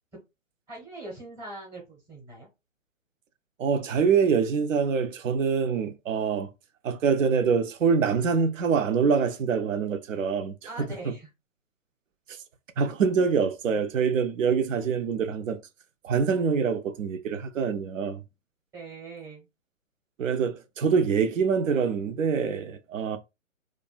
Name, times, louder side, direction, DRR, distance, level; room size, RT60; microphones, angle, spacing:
voice 1, 0.7-2.5 10.7-11.3 18.7-19.5, right 2 dB, 5° right, 0.8 m, -42 dB
voice 2, 3.6-6.5 6.8-11.1 12.8-15.6 16.0-18.2 20.2-23.2, right 6 dB, 70° right, 0.6 m, -25 dB
2.5 x 2.2 x 2.3 m
figure-of-eight pair, 135°, 40 cm